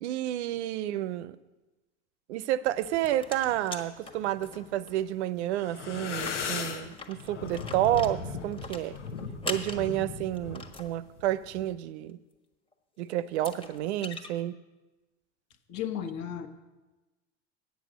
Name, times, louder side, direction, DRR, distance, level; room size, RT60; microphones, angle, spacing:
voice 1, 0.0-1.4 2.3-9.0 9.5-12.2 13.0-14.6, right 13 dB, 75° right, 0.5 m, -30 dB
sound 1, 2.6-4.9 5.2-5.3 5.6-5.7 6.1-10.9 12.7-12.8 13.3-14.3, left 3 dB, 15° left, 1.2 m, -42 dB
sound 2, 3.2-3.6 4.2-5.2 5.5-11.7, left 5 dB, 85° left, 1.0 m, -38 dB
voice 2, 15.7-16.5, left 9 dB, 55° left, 1.2 m, -34 dB
8.3 x 8.2 x 6.2 m
hypercardioid pair, 75°, 35 cm